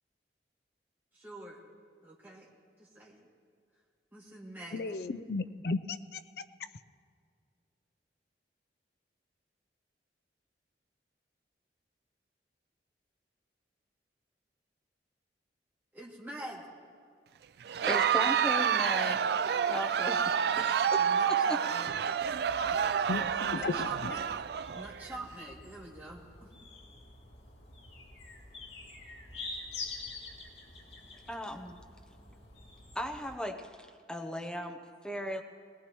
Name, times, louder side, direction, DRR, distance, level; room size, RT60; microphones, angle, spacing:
voice 1, 1.1-1.6 2.0-2.5 2.8-3.3 4.1-4.9 15.9-16.7 21.0-22.2 22.6-22.8 23.5-24.4 24.7-26.7, right 1 dB, 10° right, -5 dB, 2.5 m, -46 dB
voice 2, 4.7-6.2 23.1-24.1, left 3 dB, 60° left, 12 dB, 0.5 m, -35 dB
Crowd, 17.7-25.2, right 8 dB, 65° right, 0.3 m, -29 dB
voice 3, 17.9-19.3 19.6-21.1 31.3-31.8 32.9-35.4, equal, 5° left, 4 dB, 0.9 m, -37 dB
sound 1, 22.2-33.4, left 3 dB, 80° left, 2.3 m, -47 dB
21.0 x 20.0 x 3.1 m, 2.2 s
head